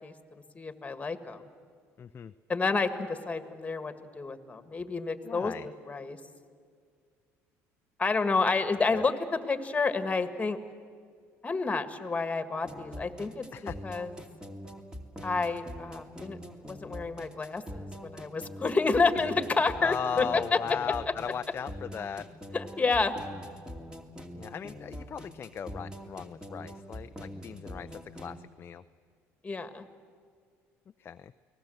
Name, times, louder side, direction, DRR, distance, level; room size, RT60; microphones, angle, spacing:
voice 1, 0.0-1.4 2.5-6.2 8.0-10.6 11.4-13.5 13.8-14.1 15.2-16.4 16.7-20.8 22.5-23.1 29.4-29.8, left 4 dB, 20° left, 10 dB, 1.9 m, -29 dB
voice 2, 2.0-2.3 5.2-5.7 8.4-8.5 8.9-9.0 13.5-13.8 19.8-22.3 24.3-28.8 31.0-31.3, left 7 dB, 35° left, 10 dB, 0.6 m, -37 dB
sound 1, 12.6-28.4, equal, 10° right, 2.6 m, -43 dB
29.5 x 19.5 x 7.9 m, 2.1 s
supercardioid pair, 90°, 6 cm